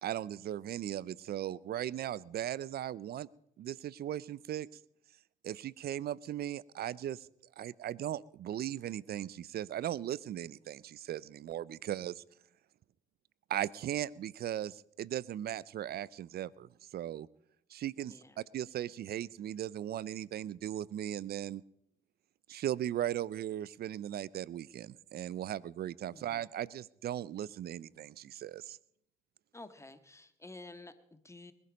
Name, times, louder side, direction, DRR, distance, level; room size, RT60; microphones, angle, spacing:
voice 1, 0.0-3.3 3.6-4.7 5.4-7.3 7.6-12.2 13.5-17.3 17.7-21.6 22.5-28.8, right 11 dB, 65° right, 23 dB, 0.5 m, -38 dB
voice 2, 18.1-18.4 26.1-26.4 29.5-31.5, left 2 dB, 15° left, 10 dB, 1.7 m, -51 dB
21.0 x 11.0 x 5.3 m, 0.74 s
supercardioid pair, 60°, 17 cm